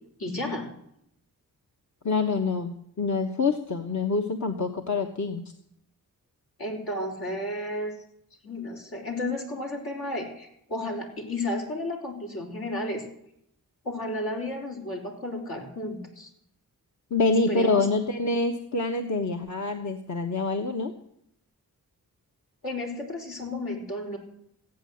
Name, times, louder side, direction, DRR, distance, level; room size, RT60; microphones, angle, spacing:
voice 1, 0.2-0.7 6.6-7.9 8.4-13.1 13.8-16.3 17.5-17.9 22.6-24.2, left 1 dB, 75° left, -1 dB, 4.2 m, -32 dB
voice 2, 2.0-5.5 17.1-20.9, left 3 dB, 50° left, 4 dB, 1.1 m, -26 dB
15.5 x 8.6 x 7.8 m, 0.74 s
cardioid pair, 55°, 37 cm